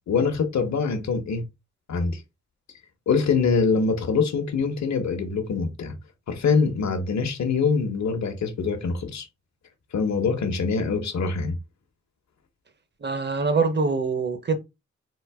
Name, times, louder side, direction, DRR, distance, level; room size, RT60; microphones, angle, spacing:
voice 1, 0.1-1.4 1.9-2.2 3.1-5.9 6.3-9.2 9.9-11.5, left 5 dB, 70° left, 1.0 m, -24 dB
voice 2, 13.0-14.6, right 4 dB, 35° right, 0.8 m, -24 dB
3.9 x 2.9 x 4.7 m
wide cardioid pair, 145°, 29 cm